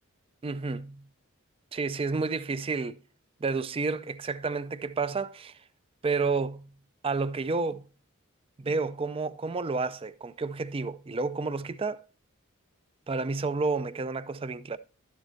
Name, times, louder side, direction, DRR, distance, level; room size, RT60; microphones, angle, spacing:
voice 1, 0.4-1.0 1.7-3.0 3.4-5.6 6.0-6.7 7.0-7.9 8.6-12.0 13.1-14.8, right 4 dB, 25° right, 0.4 m, -30 dB
11.5 x 7.5 x 2.7 m
head